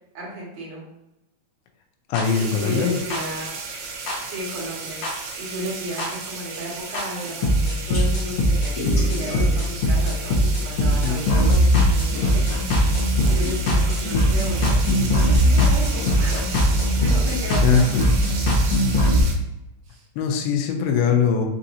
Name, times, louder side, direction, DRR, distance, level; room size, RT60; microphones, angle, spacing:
voice 1, 0.1-0.8 2.4-3.6 4.2-12.4 12.9-16.5 16.9-17.8 19.8-20.1, equal, 55° right, -6 dB, 2.4 m, -33 dB
voice 2, 2.1-3.0 10.8-11.2 17.6-18.0 20.2-21.5, left 6 dB, 85° left, 3 dB, 2.6 m, -21 dB
sound 1, 2.1-2.2 3.1-3.2 4.1-4.2 5.0-5.1 6.0-6.1 6.9-7.0 7.4-19.2, equal, 70° left, 1.5 m, -20 dB
sound 2, 2.2-19.3, right 4 dB, 85° right, 2.7 m, -35 dB
sound 3, 7.9-8.0 8.7-10.9, left 1 dB, 55° left, 0.9 m, -34 dB
6.3 x 2.9 x 2.6 m, 0.91 s
omnidirectional pair, 4.3 m